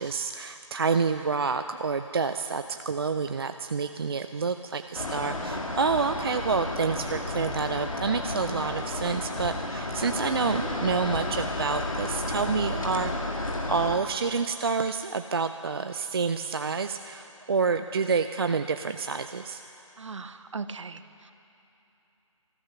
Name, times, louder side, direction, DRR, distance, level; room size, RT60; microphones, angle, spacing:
voice 1, 0.0-13.1 13.7-19.6, right 5 dB, 45° right, 8 dB, 0.4 m, -28 dB
sound 1, 4.9-14.0, left 2 dB, 85° left, 2.0 m, -32 dB
voice 2, 20.0-21.3, right 4 dB, 65° right, 12 dB, 0.8 m, -39 dB
13.5 x 13.5 x 6.7 m, 2.9 s
figure-of-eight pair, 165°, 17 cm